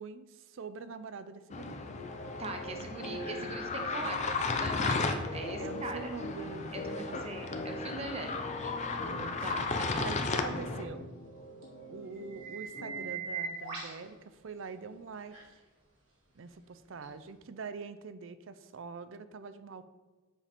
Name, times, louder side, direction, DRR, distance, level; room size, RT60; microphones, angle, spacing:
voice 1, 0.0-1.8 3.4-3.5 5.6-7.7 9.2-9.5 10.0-11.1 11.8-15.6 16.3-19.9, right 4 dB, 65° right, 12 dB, 0.5 m, -44 dB
sound 1, 1.5-13.3, left 1 dB, 70° left, 1.2 m, -43 dB
sound 2, 1.5-10.8, left 4 dB, 35° left, 0.5 m, -35 dB
voice 2, 2.4-6.0 6.7-8.8 9.4-10.2, right 2 dB, 30° right, 5 dB, 0.8 m, -41 dB
sound 3, 7.6-7.7 11.6-11.7 12.1-14.0 15.3-15.4 17.0-17.1, right 5 dB, 85° right, 2.2 m, -40 dB
7.5 x 5.0 x 4.3 m, 1.3 s
head